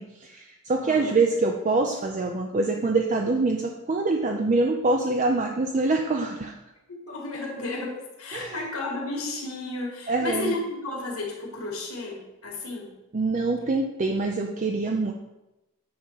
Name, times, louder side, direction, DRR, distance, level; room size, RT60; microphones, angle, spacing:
voice 1, 0.0-6.5 8.3-8.7 10.1-10.6 13.1-15.1, right 3 dB, 35° right, 2 dB, 0.5 m, -25 dB
voice 2, 0.8-1.2 6.9-12.9, left 2 dB, 70° left, -1 dB, 2.0 m, -33 dB
8.6 x 3.6 x 5.7 m, 0.99 s
head